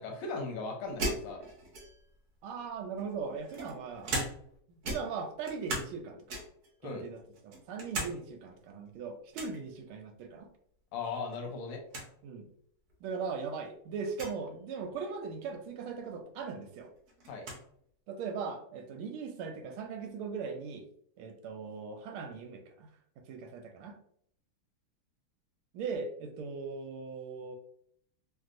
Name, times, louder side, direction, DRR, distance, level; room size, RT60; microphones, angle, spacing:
voice 1, 0.0-1.4 6.8-7.1 10.9-11.8 17.3-17.5, left 4 dB, 80° left, 2 dB, 1.5 m, -38 dB
sound 1, 1.0-2.2 3.0-4.6 4.8-6.0 6.3-6.7 7.2-8.1 8.5-8.6 9.3-9.6 11.0-11.4 11.6-11.7 11.9-12.1 12.9-13.0 14.1-14.4 16.0-16.1 16.5-17.6, right 2 dB, 60° right, 1.0 m, -38 dB
voice 2, 2.4-4.1 4.9-6.4 6.8-10.5 12.2-12.5 13.0-16.9 18.1-20.8 21.2-22.9 23.3-24.0 25.7-27.6, right 5 dB, 80° right, 5 dB, 1.4 m, -39 dB
3.3 x 2.6 x 2.4 m, 0.66 s
omnidirectional pair, 2.4 m